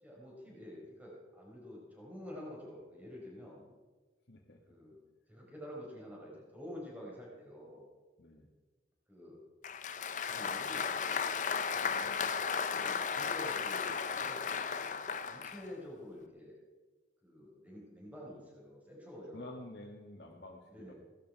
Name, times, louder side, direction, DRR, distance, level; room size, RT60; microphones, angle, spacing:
voice 1, 0.0-3.7 4.7-5.0 5.3-7.9 9.1-9.4 10.3-11.2 12.7-14.9 15.3-16.6 17.2-19.6 20.7-20.9, left 1 dB, 10° right, -4 dB, 5.0 m, -48 dB
voice 2, 4.3-4.6 8.2-8.5 11.7-12.1 19.3-20.9, left 1 dB, 65° left, -2 dB, 1.8 m, -50 dB
Applause, 9.6-15.6, left 6 dB, 45° left, 0.6 m, -35 dB
17.0 x 13.5 x 4.8 m, 1.3 s
head